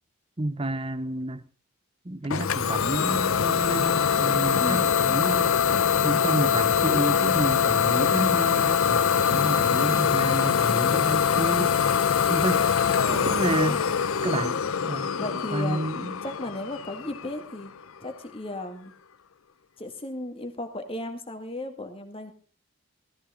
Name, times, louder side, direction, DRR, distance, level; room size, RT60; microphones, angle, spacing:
voice 1, 0.4-1.4 2.0-5.5 6.0-11.9 12.3-12.7 13.1-13.8 14.2-15.1 15.5-16.2, right 1 dB, 25° right, 0.7 m, -30 dB
Idling / Domestic sounds home sounds, 2.3-17.8, left 7 dB, 75° left, 0.7 m, -23 dB
voice 2, 4.6-5.0 13.1-13.9 14.9-15.9 16.2-17.7 18.0-18.9 19.8-22.3, left 1 dB, 25° left, 2.1 m, -35 dB
16.5 x 14.0 x 3.8 m
head